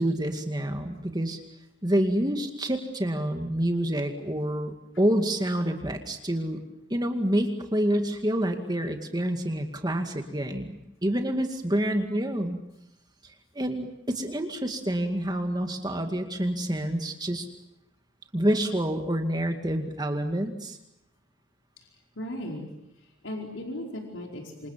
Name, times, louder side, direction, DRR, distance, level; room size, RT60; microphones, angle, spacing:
voice 1, 0.0-1.4 1.8-6.6 6.9-12.6 13.6-17.5 18.3-20.8, right 1 dB, 20° right, 5 dB, 2.2 m, -27 dB
voice 2, 22.1-22.7 23.0-24.7, left 1 dB, 80° left, 1 dB, 4.9 m, -37 dB
27.5 x 27.5 x 7.6 m, 0.83 s
head